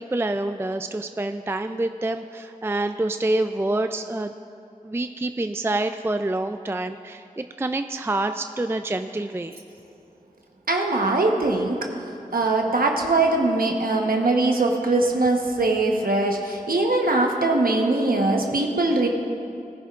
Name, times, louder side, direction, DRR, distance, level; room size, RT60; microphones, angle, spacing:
voice 1, 0.0-4.3 4.8-9.6, right 2 dB, 15° right, 8 dB, 0.3 m, -27 dB
voice 2, 10.7-11.9 12.3-19.1, right 2 dB, 85° right, 1 dB, 1.0 m, -21 dB
19.5 x 10.5 x 2.4 m, 2.6 s
wide cardioid pair, 50°, 15 cm